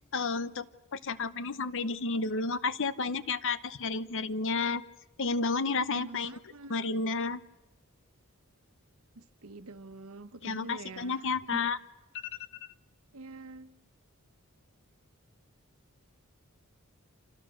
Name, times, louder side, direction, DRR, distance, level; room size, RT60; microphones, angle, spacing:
voice 1, 0.1-0.7 0.9-4.8 5.2-6.3 6.7-7.4 10.4-11.8, left 4 dB, 60° left, 15 dB, 0.9 m, -31 dB
voice 2, 5.9-6.8 9.2-11.7 13.1-13.7, right 2 dB, 75° right, 10 dB, 1.3 m, -46 dB
29.5 x 26.5 x 6.4 m, 1.0 s
head